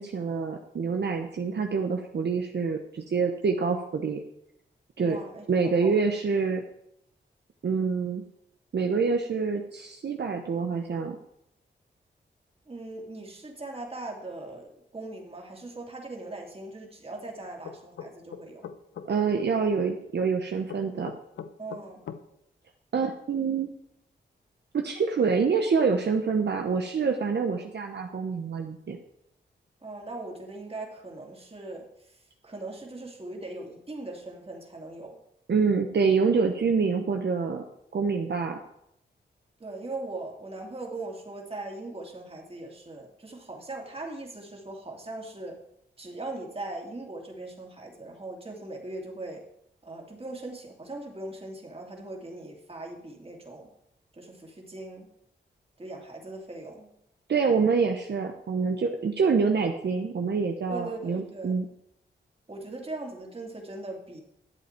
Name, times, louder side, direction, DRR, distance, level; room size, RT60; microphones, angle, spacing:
voice 1, 0.0-4.2 5.0-5.2 5.5-6.6 7.6-8.2 8.7-11.2 19.1-21.1 22.9-23.7 24.7-29.0 35.5-37.6 37.9-38.6 57.3-61.7, right 5 dB, 65° right, 3 dB, 0.9 m, -26 dB
voice 2, 5.0-5.5 5.8-5.9 12.7-18.7 21.6-22.0 29.8-31.9 32.4-35.2 39.6-45.6 46.0-49.4 49.8-53.7 54.1-55.1 55.8-56.9 60.7-61.6 62.5-64.2, right 2 dB, 30° right, 0 dB, 2.6 m, -40 dB
sound 1, 17.6-19.1 20.7-22.2, left 7 dB, 85° left, 0.7 m, -40 dB
12.0 x 7.9 x 4.5 m, 0.78 s
cardioid pair, 65°, 19 cm